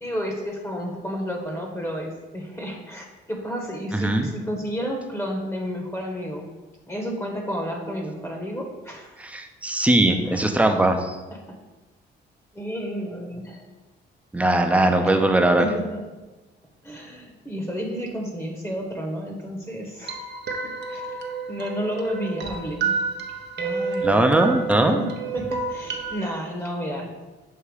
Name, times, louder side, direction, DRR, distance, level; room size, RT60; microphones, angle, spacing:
voice 1, 0.0-6.5 6.9-9.2 10.3-10.5 11.3-11.4 12.5-13.6 15.6-16.0 16.8-20.2 20.9-21.0 21.5-23.0 23.6-24.3 24.8-27.3, equal, 15° left, 1 dB, 1.1 m, -31 dB
voice 2, 3.9-4.3 9.2-11.2 14.3-15.6 24.0-25.0, right 1 dB, 5° right, 4 dB, 0.7 m, -20 dB
sound 1, 20.0-26.3, right 5 dB, 60° right, 0.8 m, -30 dB
6.9 x 2.8 x 4.8 m, 1.2 s
cardioid pair, 90°, 20 cm